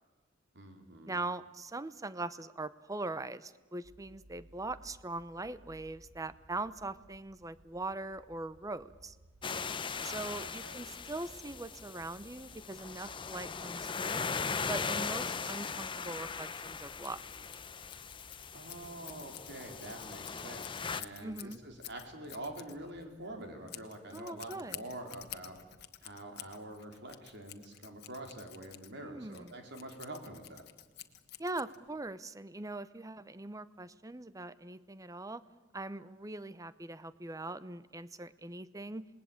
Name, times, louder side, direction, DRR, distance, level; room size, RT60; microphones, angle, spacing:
voice 1, 0.5-1.2 9.9-10.8 18.5-25.6 26.0-30.6, right 1 dB, 60° right, 4 dB, 4.2 m, -46 dB
voice 2, 1.1-9.2 10.0-14.3 14.7-17.2 21.2-21.6 24.1-24.8 29.0-29.5 31.4-35.4 35.7-39.1, right 2 dB, 15° right, 15 dB, 0.8 m, -41 dB
sound 1, 3.8-23.6, right 1 dB, 80° right, 2.2 m, -61 dB
sound 2, 9.4-21.0, left 5 dB, 25° left, 0.7 m, -39 dB
Scissors, 16.5-32.1, left 13 dB, 55° left, 1.4 m, -51 dB
27.5 x 20.0 x 8.8 m, 1.2 s
head